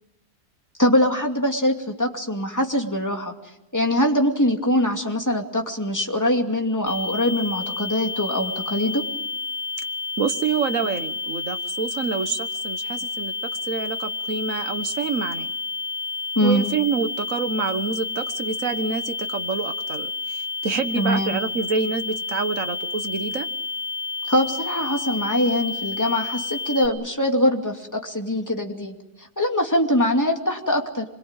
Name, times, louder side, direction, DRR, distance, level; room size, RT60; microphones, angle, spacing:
voice 1, 0.8-3.3 3.7-9.0 16.4-16.6 20.9-21.4 24.2-31.0, left 1 dB, 10° left, 2 dB, 2.5 m, -23 dB
sound 1, 6.9-26.9, left 4 dB, 55° left, 3.0 m, -30 dB
voice 2, 10.2-15.5 16.4-23.5, right 5 dB, 60° right, 9 dB, 1.7 m, -27 dB
25.5 x 22.5 x 9.1 m, 0.91 s
omnidirectional pair, 1.6 m